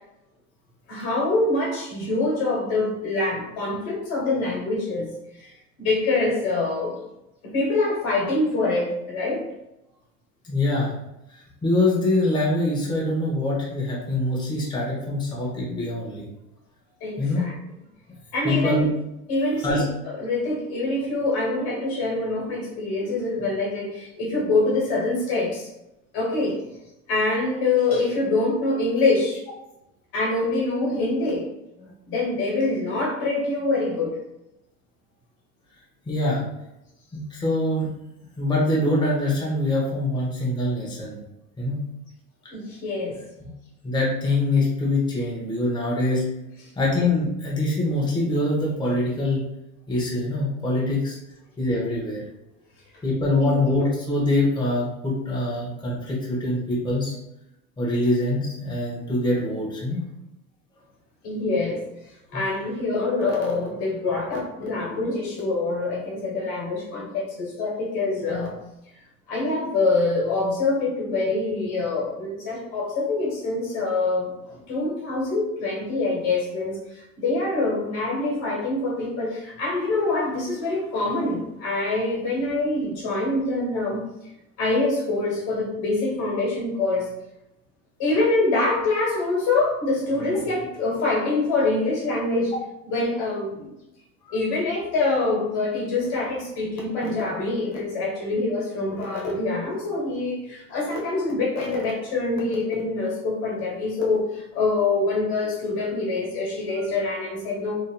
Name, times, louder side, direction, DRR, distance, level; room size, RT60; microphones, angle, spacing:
voice 1, 0.9-5.1 5.4-5.5 5.8-7.0 7.4-9.5 17.0-17.5 18.3-18.9 19.3-19.8 20.1-25.7 26.1-26.6 27.1-29.4 30.1-31.5 31.8-34.2 42.5-43.2 53.4-53.9 61.2-61.8 62.3-68.5 69.3-84.1 84.6-87.1 88.0-92.5 92.9-93.7 94.3-107.8, left 2 dB, 55° left, -2 dB, 1.2 m, -25 dB
voice 2, 10.4-10.9 11.3-16.3 17.2-17.5 18.4-18.9 19.6-19.8 36.1-36.4 37.1-37.9 38.4-41.2 41.6-41.8 43.8-46.3 46.8-49.5 49.9-51.2 51.6-52.2 53.0-57.1 57.8-60.0 94.2-94.4, left 2 dB, 10° left, -5 dB, 0.9 m, -24 dB
2.8 x 2.6 x 2.2 m, 0.89 s
hypercardioid pair, 85°, 42 cm